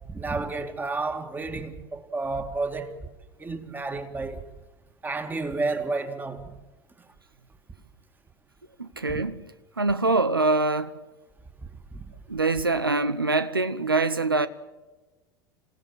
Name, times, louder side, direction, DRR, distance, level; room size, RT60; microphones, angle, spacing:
voice 1, 0.1-2.9 3.4-4.4 5.0-6.4 11.9-12.0, right 3 dB, 15° right, 2.3 m, -31 dB
voice 2, 8.8-9.5 9.8-11.0 12.3-14.5, right 3 dB, 90° right, 0.7 m, -24 dB
28.0 x 16.5 x 7.8 m
figure-of-eight pair, 75°, 12 cm